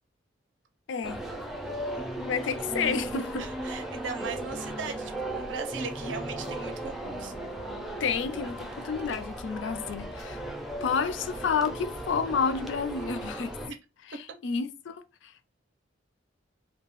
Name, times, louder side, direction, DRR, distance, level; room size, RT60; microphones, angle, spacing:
voice 1, 0.9-1.2 2.2-3.5 8.0-10.4 10.8-13.6 14.1-15.5, left 5 dB, 70° left, 0.4 m, -30 dB
sound 1, 1.0-13.7, right 1 dB, ahead, 0.4 m, -36 dB
voice 2, 3.4-7.4 13.7-13.8, right 4 dB, 80° right, 0.5 m, -38 dB
2.7 x 2.3 x 3.0 m
head